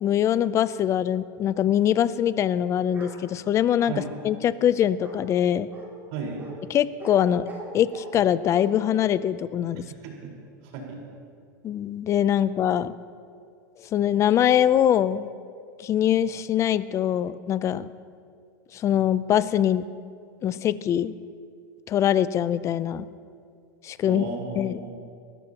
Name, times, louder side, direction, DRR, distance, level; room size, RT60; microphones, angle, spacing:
voice 1, 0.0-3.9 4.2-5.7 6.7-7.4 7.7-9.8 11.6-12.9 13.9-15.3 15.8-17.9 18.7-19.9 20.4-21.1 21.9-23.1 23.8-24.2 24.6-24.8, left 10 dB, 25° left, 16 dB, 0.5 m, -23 dB
Bark, 2.9-3.2 3.8-4.3 5.0-5.2 5.7-5.9 6.4-6.5 7.0-7.2 7.4-8.1 8.5-8.6, right 2 dB, 20° right, 3.8 m, -41 dB
voice 2, 6.1-6.4 9.7-10.3 10.6-11.0 24.0-24.9, right 5 dB, 60° right, -1 dB, 4.5 m, -35 dB
29.5 x 14.0 x 2.9 m, 2.3 s
supercardioid pair, 140°, 11 cm